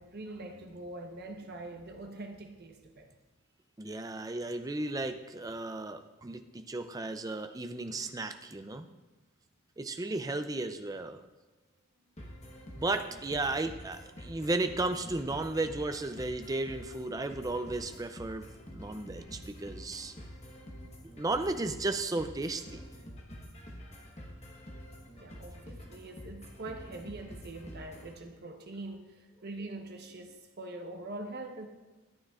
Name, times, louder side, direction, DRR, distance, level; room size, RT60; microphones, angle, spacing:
voice 1, 0.0-3.1 25.2-31.7, right 2 dB, 45° right, 3 dB, 1.0 m, -43 dB
voice 2, 3.8-8.9 9.8-11.2 12.8-20.1 21.2-22.8, right 2 dB, 15° right, 8 dB, 0.4 m, -34 dB
sound 1, 12.2-28.1, equal, 30° left, 1.1 m, -48 dB
13.0 x 8.8 x 2.4 m, 1.1 s
head